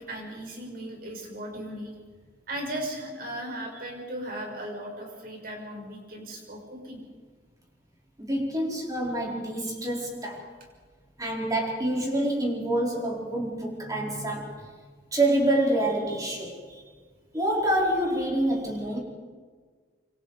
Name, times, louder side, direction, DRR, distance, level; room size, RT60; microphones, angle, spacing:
voice 1, 0.0-2.0 2.5-7.0 9.5-9.9, right 1 dB, 55° right, 1 dB, 6.4 m, -37 dB
voice 2, 8.2-10.5 11.2-14.7 15.1-16.9 17.3-19.0, right 1 dB, 20° right, -2 dB, 4.8 m, -27 dB
27.0 x 25.0 x 5.1 m, 1.5 s
head